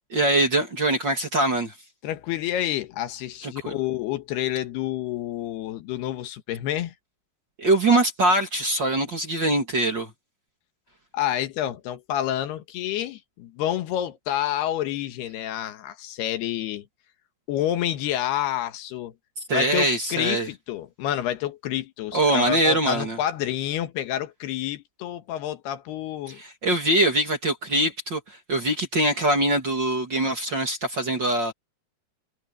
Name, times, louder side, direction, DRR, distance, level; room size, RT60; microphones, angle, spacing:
voice 1, 0.1-1.7 3.4-3.8 7.6-10.1 19.4-20.5 22.1-23.2 26.4-31.5, right 1 dB, 35° right, 2.4 m, -23 dB
voice 2, 2.0-6.9 11.1-16.8 17.5-19.1 19.5-26.4, left 12 dB, 80° left, 3.2 m, -28 dB
omnidirectional pair, 4.7 m